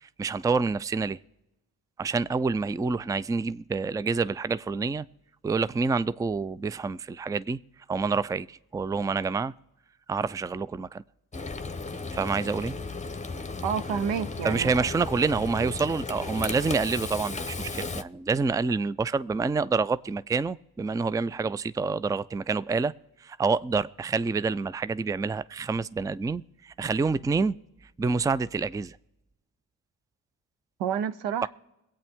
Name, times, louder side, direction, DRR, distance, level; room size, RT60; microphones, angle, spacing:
voice 1, 0.0-1.2 2.0-5.1 5.4-7.6 7.9-9.5 10.1-11.0 12.1-12.8 14.4-22.9 23.2-27.6 28.0-29.0 31.4-31.5, right 4 dB, 10° right, 0.4 m, -27 dB
Frying (food), 11.3-18.0, left 3 dB, 15° left, 0.9 m, -35 dB
voice 2, 13.6-14.9 30.8-31.5, right 8 dB, 80° right, 0.7 m, -29 dB
23.0 x 8.6 x 3.6 m
hypercardioid pair, 40°, 42 cm